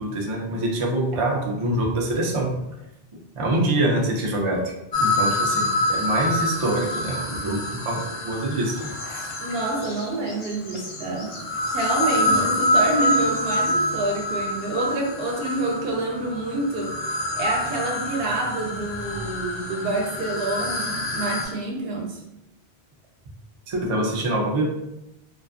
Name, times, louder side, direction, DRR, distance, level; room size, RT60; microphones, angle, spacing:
voice 1, 0.0-2.6 3.4-9.3 12.3-12.5 23.7-24.6, right 1 dB, 50° right, 0 dB, 0.3 m, -25 dB
sound 1, 4.9-10.1 11.0-21.5, left 1 dB, 50° left, 0.5 m, -26 dB
Bird vocalization bird call bird song, 8.6-12.2 12.8-12.9 13.2-13.7, left 3 dB, 90° left, 0.9 m, -41 dB
voice 2, 9.4-11.4 11.7-17.0 17.4-22.2, right 2 dB, 70° right, 0 dB, 0.8 m, -27 dB
2.4 x 2.3 x 2.5 m, 0.89 s
omnidirectional pair, 1.1 m